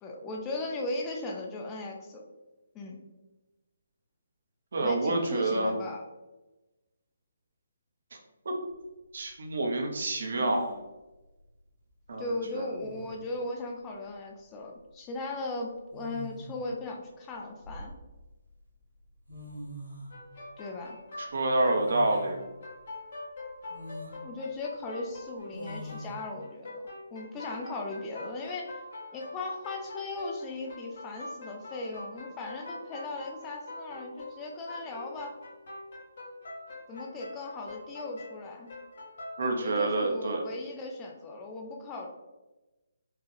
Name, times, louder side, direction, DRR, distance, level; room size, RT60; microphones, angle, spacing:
voice 1, 0.0-2.2 2.7-3.0 4.8-6.0 12.2-17.9 20.6-21.0 24.2-26.8 27.1-28.8 29.1-35.3 36.9-38.7 39.5-42.1, left 2 dB, 20° left, 0 dB, 0.5 m, -37 dB
voice 2, 4.7-5.7 8.5-8.6 9.1-10.7 12.1-12.7 21.3-22.4 39.4-40.4, right 2 dB, 60° right, 2 dB, 0.7 m, -28 dB
sound 1, 8.7-8.8 10.3-10.8 12.3-12.4 12.8-13.3 14.6-14.8 15.9-16.7 17.3-18.3 19.0-19.1 19.3-20.2 21.8-22.4 22.9-23.0 23.7-24.2 25.5-26.1, equal, 90° right, 1.4 m, -42 dB
sound 2, 20.1-39.9, left 2 dB, 50° left, 1.5 m, -44 dB
4.5 x 2.4 x 3.3 m, 1.1 s
figure-of-eight pair, 140°, 0 cm